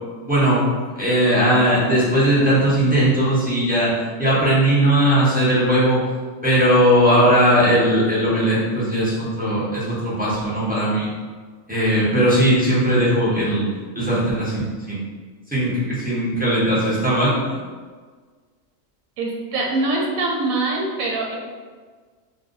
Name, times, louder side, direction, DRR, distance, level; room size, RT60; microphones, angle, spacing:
voice 1, 0.2-0.7 1.0-6.0 6.4-11.1 11.7-13.7 13.9-15.0 15.5-17.4, right 1 dB, 10° right, -9 dB, 0.6 m, -18 dB
voice 2, 19.2-21.4, right 2 dB, 85° right, -1 dB, 1.0 m, -23 dB
2.5 x 2.2 x 3.7 m, 1.5 s
omnidirectional pair, 1.4 m